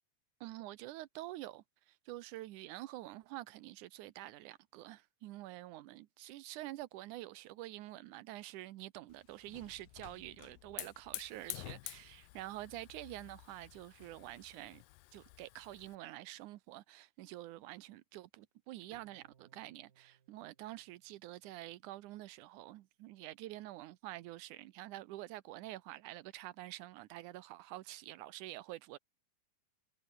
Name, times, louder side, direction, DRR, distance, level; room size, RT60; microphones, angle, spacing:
voice 1, 0.4-14.8 15.1-29.0, right 16 dB, 70° right, 2.0 m, -47 dB
Hiss / Fire, 9.1-16.0, left 21 dB, 80° left, 2.3 m, -50 dB
Bowed string instrument, 18.9-22.1, right 8 dB, 90° right, 5.0 m, -69 dB
omnidirectional pair, 4.2 m